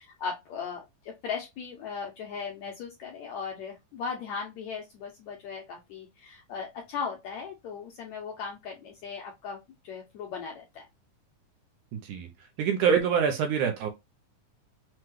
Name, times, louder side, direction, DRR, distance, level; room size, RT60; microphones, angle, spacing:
voice 1, 0.2-10.9, left 6 dB, 80° left, 1.6 m, -37 dB
voice 2, 11.9-12.3 12.6-13.9, right 7 dB, 80° right, 1.8 m, -25 dB
5.9 x 2.2 x 3.1 m
omnidirectional pair, 3.9 m